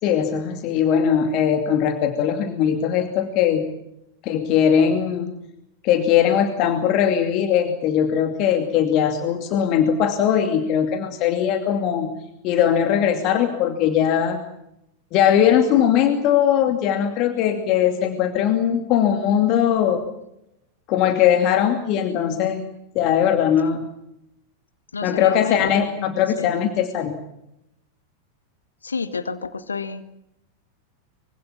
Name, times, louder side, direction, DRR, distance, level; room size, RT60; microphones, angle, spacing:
voice 1, 0.0-3.7 4.2-5.3 5.8-12.2 12.4-14.4 15.1-20.0 20.9-22.7 22.9-23.9 25.0-27.2, left 9 dB, 40° left, 7 dB, 2.5 m, -20 dB
voice 2, 24.9-25.7 26.4-26.5 28.8-30.1, left 4 dB, 75° left, 13 dB, 1.5 m, -30 dB
24.5 x 24.5 x 7.3 m, 0.85 s
figure-of-eight pair, 90°, 0 cm